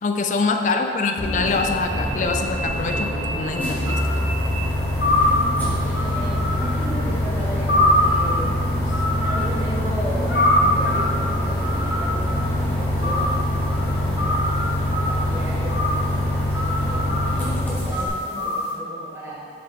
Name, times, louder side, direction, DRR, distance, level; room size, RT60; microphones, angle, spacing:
voice 1, 0.0-4.0, left 4 dB, 45° left, 5 dB, 0.3 m, -24 dB
voice 2, 0.6-1.4 5.8-8.5 9.1-14.4 14.9-19.4, equal, 15° right, -8 dB, 1.4 m, -35 dB
Bus, 1.2-18.1, left 1 dB, 10° left, 1.1 m, -24 dB
sound 1, 3.8-18.7, left 1 dB, 65° left, 1.0 m, -25 dB
7.3 x 4.6 x 3.5 m, 2.4 s
head